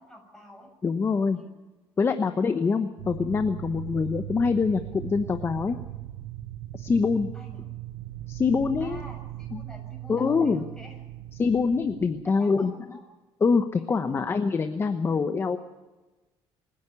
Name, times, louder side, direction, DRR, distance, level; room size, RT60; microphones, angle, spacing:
voice 1, 0.0-0.7 1.3-1.5 7.3-7.8 8.8-11.0 12.2-13.0 13.8-14.3, left 1 dB, 5° left, 1 dB, 7.2 m, -48 dB
voice 2, 0.8-1.4 2.0-5.8 6.7-7.3 8.3-9.0 9.5-9.6 10.1-10.6 11.4-12.7 13.4-15.6, left 5 dB, 25° left, 8 dB, 1.0 m, -24 dB
sound 1, 3.0-12.4, right 14 dB, 90° right, 0.8 m, -39 dB
26.5 x 10.5 x 9.7 m, 1.2 s
cardioid pair, 135°, 9 cm